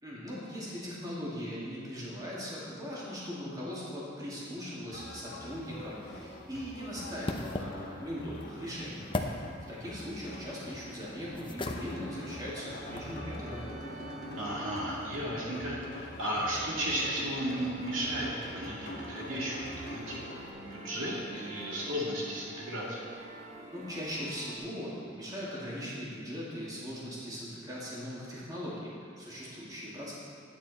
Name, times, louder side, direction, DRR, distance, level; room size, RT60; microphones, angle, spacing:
voice 1, 0.0-9.1 9.7-13.7 23.7-30.1, equal, 20° right, -7 dB, 2.3 m, -40 dB
sound 1, 4.9-20.5, left 1 dB, 55° left, 1.2 m, -45 dB
sound 2, 5.5-13.2, left 2 dB, 25° left, 0.6 m, -41 dB
sound 3, 12.9-24.6, right 2 dB, 35° right, 1.1 m, -48 dB
voice 2, 14.4-20.3 20.6-23.0, right 1 dB, 85° right, -5 dB, 2.4 m, -34 dB
11.5 x 9.1 x 4.2 m, 2.5 s
head